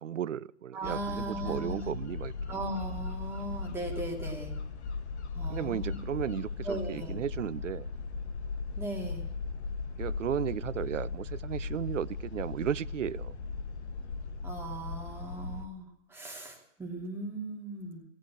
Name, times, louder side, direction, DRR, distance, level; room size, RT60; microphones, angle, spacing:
voice 1, 0.0-2.3 5.5-7.9 10.0-13.4, right 9 dB, 80° right, 21 dB, 0.6 m, -34 dB
voice 2, 0.7-1.9 2.5-4.5 5.3-6.0 6.6-7.2 8.8-9.3 14.4-18.0, right 2 dB, 5° right, -1 dB, 2.8 m, -38 dB
sound 1, 0.8-15.7, left 4 dB, 60° left, 1.8 m, -38 dB
18.0 x 8.7 x 7.5 m, 0.78 s
hypercardioid pair, 125°, 37 cm